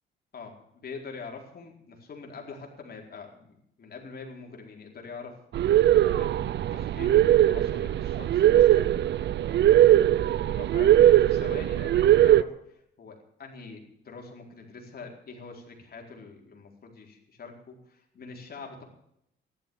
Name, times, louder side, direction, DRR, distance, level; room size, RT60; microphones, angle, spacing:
voice 1, 0.3-5.4 5.7-8.9 9.8-18.8, left 4 dB, 50° left, 1 dB, 4.3 m, -44 dB
sound 1, 5.5-12.4, right 12 dB, 60° right, 0.6 m, -20 dB
14.0 x 11.5 x 7.1 m, 0.75 s
cardioid pair, 90°, 20 cm